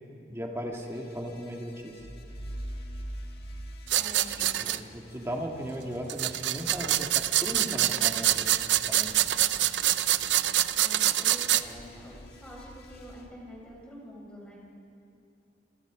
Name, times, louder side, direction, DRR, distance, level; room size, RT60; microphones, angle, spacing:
voice 1, 0.3-2.1 4.4-8.5 8.9-9.2, equal, 15° right, 0 dB, 1.9 m, -37 dB
sound 1, 0.7-13.3, left 1 dB, 55° left, 2.1 m, -53 dB
sound 2, 2.0-4.8, right 1 dB, 90° left, 7.4 m, -40 dB
sound 3, 3.9-4.8 6.1-11.6, right 13 dB, 80° right, 0.6 m, -25 dB
voice 2, 4.0-4.7 9.4-9.8 10.7-14.6, equal, 5° left, -3 dB, 4.9 m, -47 dB
28.0 x 24.5 x 5.0 m, 2.8 s
head